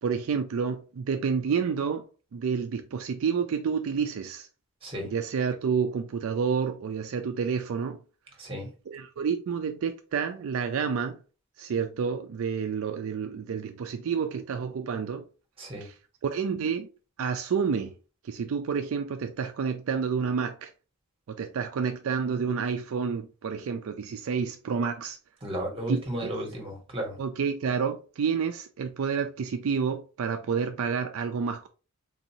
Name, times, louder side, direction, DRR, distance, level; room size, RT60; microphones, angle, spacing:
voice 1, 0.0-2.1 2.3-4.5 5.1-8.0 8.9-11.2 11.6-15.2 15.8-15.9 16.2-16.9 17.2-17.9 18.2-20.7 21.4-25.2 25.9-26.3 27.2-31.7, right 6 dB, 70° right, 0.4 m, -29 dB
voice 2, 8.4-8.7 15.6-15.9 25.4-27.2, right 1 dB, 25° right, 1.3 m, -33 dB
3.9 x 2.6 x 2.8 m
head